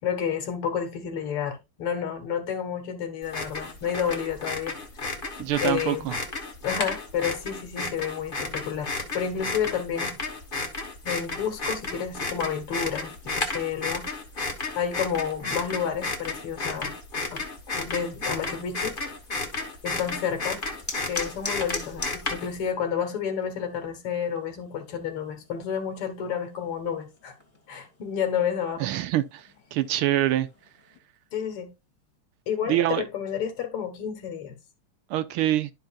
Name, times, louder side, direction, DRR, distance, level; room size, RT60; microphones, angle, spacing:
voice 1, 0.0-4.8 5.6-6.1 6.6-10.2 11.0-14.1 14.7-16.9 17.3-17.4 17.7-19.0 19.8-20.6 21.1-27.3 27.7-28.9 31.3-31.7 32.5-34.6, left 8 dB, 85° left, 2.4 m, -30 dB
sound 1, 3.2-22.7, left 3 dB, 30° left, 1.2 m, -33 dB
voice 2, 5.4-6.2 28.8-29.4 29.7-30.5 32.7-33.1 35.1-35.7, right 13 dB, 80° right, 1.5 m, -25 dB
sound 2, 19.8-31.0, left 1 dB, 5° left, 1.9 m, -44 dB
12.0 x 5.3 x 2.4 m
omnidirectional pair, 2.4 m